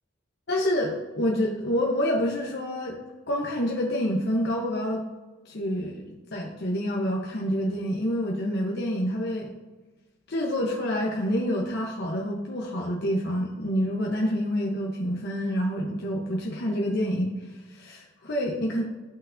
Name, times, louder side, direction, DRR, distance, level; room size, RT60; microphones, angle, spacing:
voice 1, 0.5-3.0 3.3-5.0 5.5-9.5 10.3-17.3 17.7-18.8, equal, 60° left, -2 dB, 0.9 m, -27 dB
12.0 x 5.9 x 2.6 m, 1.2 s
head